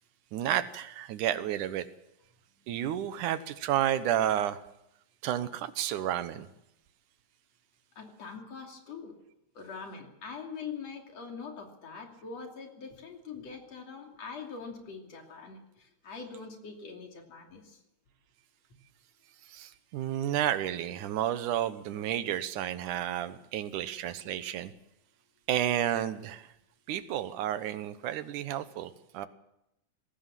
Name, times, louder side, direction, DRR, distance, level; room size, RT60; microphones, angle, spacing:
voice 1, 0.3-1.9 2.7-4.6 5.2-6.5 19.5-24.7 25.5-26.5 26.9-29.3, right 11 dB, 80° right, 12 dB, 2.5 m, -31 dB
voice 2, 8.0-9.2 9.6-17.8, left 5 dB, 55° left, 2 dB, 3.8 m, -43 dB
21.0 x 17.0 x 7.5 m, 0.83 s
omnidirectional pair, 3.6 m